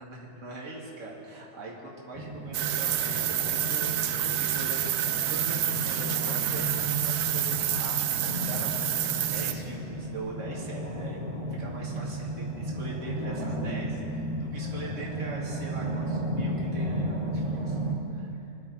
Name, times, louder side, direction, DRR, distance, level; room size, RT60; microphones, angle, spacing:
voice 1, 0.0-17.8 18.1-18.3, right 2 dB, 50° right, -5 dB, 2.3 m, -42 dB
sound 1, 2.1-17.9, right 1 dB, 25° right, 1.7 m, -34 dB
sound 2, 2.5-9.5, right 11 dB, 80° right, 1.1 m, -28 dB
21.5 x 11.5 x 2.8 m, 2.8 s
omnidirectional pair, 1.7 m